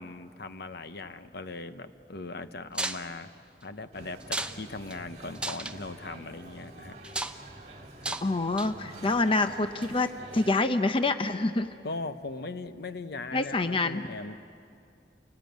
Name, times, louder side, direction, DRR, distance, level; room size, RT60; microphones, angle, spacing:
voice 1, 0.0-3.3 3.6-7.0 8.0-8.2 11.8-14.4, left 3 dB, 65° left, 10 dB, 0.9 m, -39 dB
sound 1, 2.7-3.0 4.2-4.6 4.9-5.0 5.4-5.8 7.0-7.4 8.0-8.3 8.6-8.9, right 2 dB, 5° right, 0.8 m, -33 dB
sound 2, 3.9-10.5, right 2 dB, 40° right, 3.0 m, -48 dB
voice 2, 8.2-11.7 13.3-14.1, left 2 dB, 30° left, 9 dB, 0.7 m, -27 dB
29.5 x 18.5 x 9.2 m, 2.5 s
head